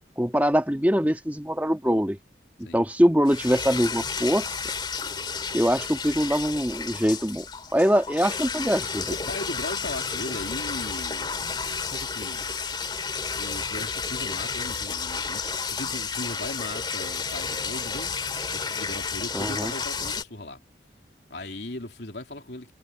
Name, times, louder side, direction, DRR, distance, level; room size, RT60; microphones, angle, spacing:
voice 1, 0.2-2.2 2.7-4.6 5.5-7.5 7.7-9.1 19.3-19.7, equal, 10° right, 1.7 m, -23 dB
sound 1, 3.3-20.2, left 5 dB, 25° left, 2.6 m, -31 dB
voice 2, 9.1-11.4 11.8-12.5 13.3-18.2 18.5-20.6 21.3-22.7, left 2 dB, 65° left, 3.2 m, -38 dB
head